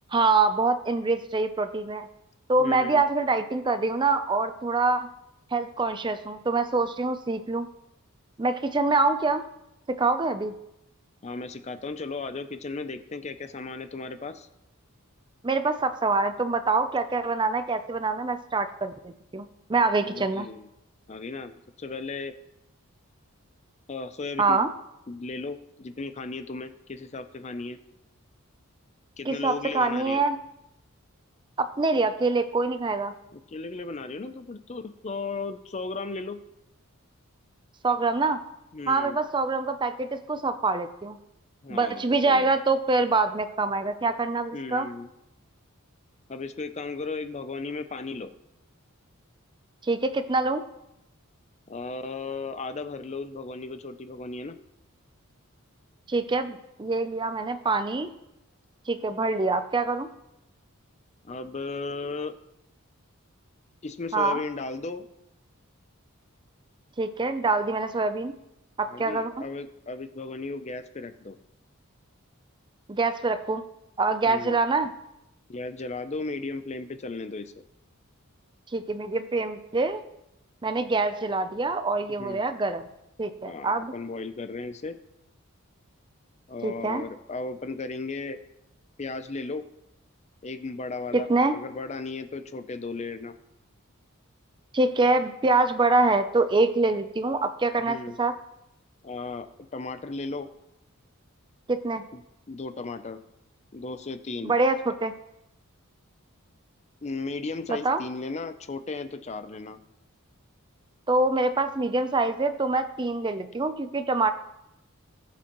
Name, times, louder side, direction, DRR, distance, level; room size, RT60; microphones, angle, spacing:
voice 1, 0.1-2.1 2.5-5.1 5.5-7.7 8.4-9.4 9.9-10.5 15.4-20.5 24.4-24.7 29.3-30.4 31.6-33.1 37.8-38.4 38.9-41.2 41.7-44.9 49.8-50.6 56.1-58.1 58.9-60.1 64.1-64.4 67.0-68.3 68.8-69.4 72.9-73.6 74.0-74.9 78.7-80.0 80.6-82.9 83.2-83.9 86.6-87.1 91.1-91.6 94.7-98.4 101.7-102.1 104.4-105.1 107.7-108.0 111.1-114.3, right 3 dB, 20° right, 10 dB, 0.5 m, -25 dB
voice 2, 2.6-3.0 11.2-14.5 20.0-20.7 21.1-21.5 21.8-22.3 23.9-24.6 25.1-27.8 29.2-30.2 33.3-36.4 38.7-39.2 41.6-42.5 44.5-45.1 46.3-48.3 51.7-54.6 61.2-62.3 63.8-65.1 68.9-71.4 74.3-74.6 75.5-77.6 82.2-82.4 83.4-85.0 86.5-88.4 89.0-89.7 90.4-93.3 97.9-98.2 99.0-100.5 102.1-102.2 102.5-103.2 103.7-104.5 107.0-109.8, left 3 dB, 30° left, 10 dB, 0.5 m, -35 dB
18.5 x 7.2 x 3.0 m, 0.87 s
head